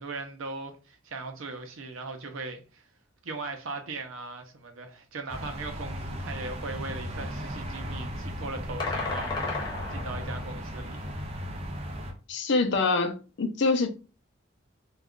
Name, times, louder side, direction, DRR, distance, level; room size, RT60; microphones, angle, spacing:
voice 1, 0.0-2.9 3.2-11.2, right 3 dB, 80° right, 0.6 m, -39 dB
sound 1, 5.3-12.1, equal, 30° right, 0.6 m, -36 dB
sound 2, 8.8-10.5, left 3 dB, 20° left, 0.7 m, -33 dB
voice 2, 12.3-13.9, left 3 dB, 60° left, 0.5 m, -25 dB
2.3 x 2.3 x 3.6 m
head